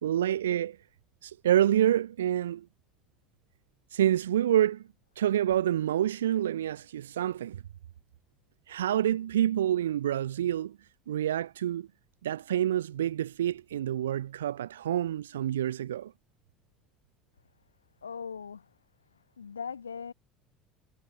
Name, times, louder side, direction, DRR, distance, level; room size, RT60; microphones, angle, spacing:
voice 1, 0.0-0.8 1.2-2.7 3.9-4.8 5.2-7.6 8.7-10.8 11.1-11.9 12.2-16.1, right 11 dB, 70° right, 1.8 m, -27 dB
voice 2, 18.0-18.7 19.1-20.1, left 6 dB, 80° left, 2.5 m, -40 dB
figure-of-eight pair, 65°, 0 cm